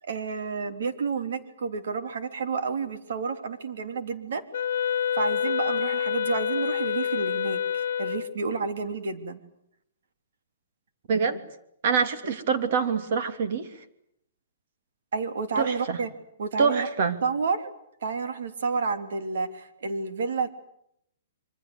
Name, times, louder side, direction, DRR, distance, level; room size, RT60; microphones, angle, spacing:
voice 1, 0.0-4.4 5.1-9.4 15.1-16.1 16.4-16.9 17.2-17.7 18.0-20.5, right 4 dB, 65° right, 8 dB, 3.5 m, -30 dB
Wind instrument woodwind instrument, 4.5-8.4, left 8 dB, 60° left, 1.5 m, -27 dB
voice 2, 11.1-11.4 11.8-13.7 15.6-16.0 16.6-17.2, right 5 dB, 45° right, 9 dB, 2.9 m, -25 dB
27.0 x 24.5 x 8.1 m, 0.76 s
hypercardioid pair, 175°, 0 cm